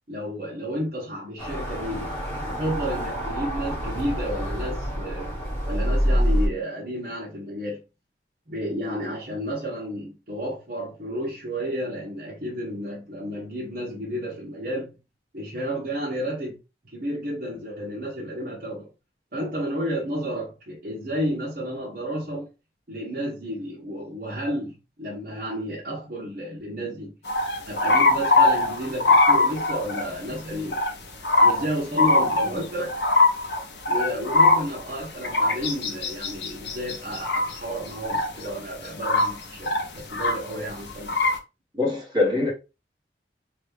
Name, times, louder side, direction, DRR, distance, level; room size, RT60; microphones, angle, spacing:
voice 1, 0.1-2.2 2.5-5.3 5.7-7.8 8.5-14.9 15.3-16.6 16.8-18.9 19.3-22.5 22.9-27.1 27.7-30.8 31.4-33.0 33.9-41.3, equal, 50° right, 1.0 m, -31 dB
sound 1, 1.4-6.5, equal, 15° left, 1.1 m, -26 dB
sound 2, 27.3-30.1 30.7-30.9 31.2-31.7 32.0-38.5 38.8-40.5 40.9-41.4, left 2 dB, 70° left, 0.7 m, -21 dB
voice 2, 41.7-42.5, left 3 dB, 20° right, 1.3 m, -23 dB
3.0 x 2.3 x 3.2 m
head